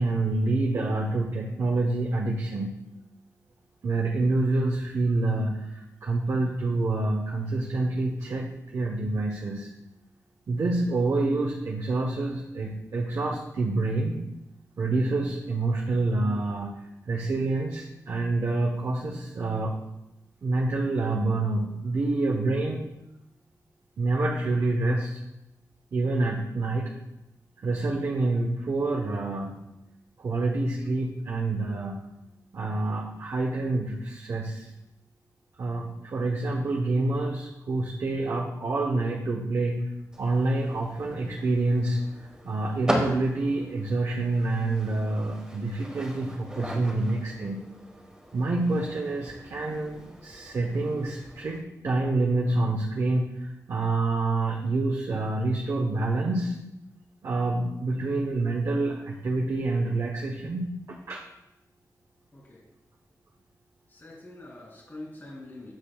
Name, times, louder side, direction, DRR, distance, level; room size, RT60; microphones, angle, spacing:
voice 1, 0.0-2.7 3.8-9.7 10.5-14.2 14.8-16.7 17.1-19.7 20.4-22.8 24.0-25.2 25.9-26.9 27.6-29.5 30.2-31.9 32.5-34.7 35.6-39.8 40.2-42.0 42.4-47.6 48.3-56.5 57.2-61.2, right 2 dB, 55° right, 0 dB, 0.9 m, -27 dB
sound 1, 40.1-51.6, equal, 10° right, 1.4 m, -38 dB
voice 2, 62.3-62.6 63.9-65.7, left 2 dB, 35° left, -3 dB, 2.6 m, -44 dB
10.5 x 6.6 x 2.3 m, 0.88 s
wide cardioid pair, 150°, 6 cm